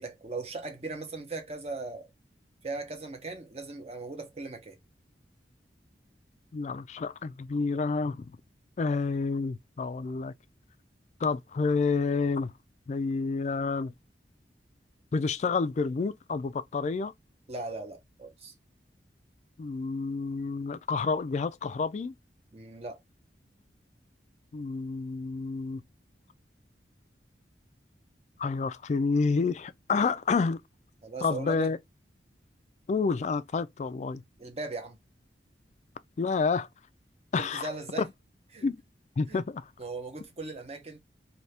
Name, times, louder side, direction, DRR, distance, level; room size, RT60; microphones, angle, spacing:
voice 1, 0.0-2.1 2.6-4.8 17.5-18.5 22.5-23.0 31.0-31.7 34.4-35.0 37.4-38.1 38.5-38.7 39.3-39.4 39.8-41.0, right 3 dB, 35° right, 0.9 m, -38 dB
voice 2, 6.5-8.4 8.8-10.3 11.2-12.5 12.9-13.9 15.1-17.1 19.6-22.1 24.5-25.8 28.4-30.6 31.2-31.8 32.9-34.2 36.2-36.7 37.3-37.7 38.0-38.1 38.6-38.8 39.2-39.7, left 4 dB, 40° left, 0.3 m, -29 dB
2.8 x 2.7 x 3.3 m
head